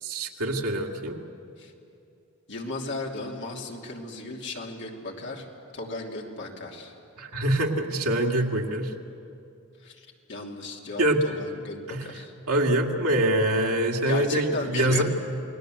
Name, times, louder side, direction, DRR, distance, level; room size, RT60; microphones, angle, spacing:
voice 1, 0.0-1.2 7.2-8.9 11.0-11.2 11.9-12.1 12.5-15.0, right 1 dB, 90° right, 0 dB, 2.1 m, -24 dB
voice 2, 2.5-5.5 5.7-6.9 9.8-12.3 14.1-15.0, left 2 dB, 55° left, -1 dB, 2.9 m, -35 dB
28.5 x 19.5 x 7.9 m, 2.6 s
head